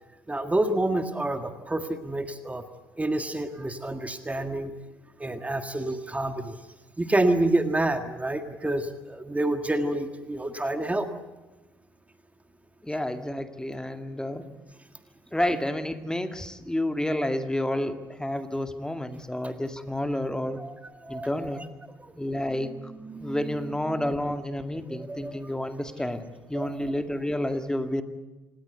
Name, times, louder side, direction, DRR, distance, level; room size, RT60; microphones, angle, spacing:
voice 1, 0.3-2.6 3.0-4.7 5.2-6.6 7.0-11.1 20.6-21.7 22.0-22.1 22.6-24.1 24.9-25.5 26.5-26.8, right 2 dB, 15° right, 7 dB, 1.8 m, -29 dB
voice 2, 12.8-14.4 15.3-20.6 21.1-21.7 22.1-22.7 23.2-28.0, left 1 dB, 5° left, 7 dB, 2.1 m, -30 dB
27.0 x 19.5 x 8.2 m, 1.1 s
hypercardioid pair, 60°, 10 cm